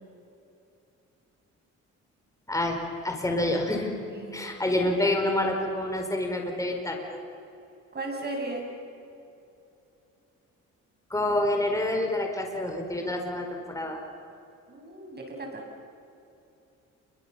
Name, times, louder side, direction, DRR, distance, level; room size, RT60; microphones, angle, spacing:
voice 1, 3.0-3.9 4.3-7.2 11.1-14.0, left 1 dB, 10° left, 2 dB, 4.8 m, -27 dB
voice 2, 4.1-4.9 7.9-8.7 14.7-15.6, right 2 dB, 35° right, 2 dB, 7.6 m, -36 dB
29.0 x 24.0 x 7.1 m, 2.7 s
cardioid pair, 90°, 30 cm